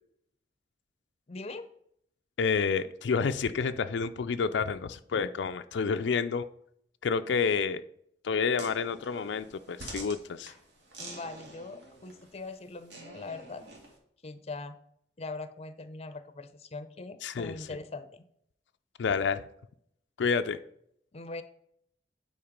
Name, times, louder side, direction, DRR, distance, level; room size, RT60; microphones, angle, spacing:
voice 1, 1.3-1.7 11.0-13.6 14.2-14.8 15.2-18.2 21.1-21.4, left 3 dB, 35° left, 0.6 m, -41 dB
voice 2, 2.4-6.5 7.0-7.8 8.2-10.5 17.2-17.5 19.0-19.4 20.2-20.6, left 5 dB, 85° left, 0.4 m, -29 dB
sound 1, 8.5-14.0, right 2 dB, 80° right, 2.1 m, -47 dB
8.7 x 4.5 x 5.1 m
head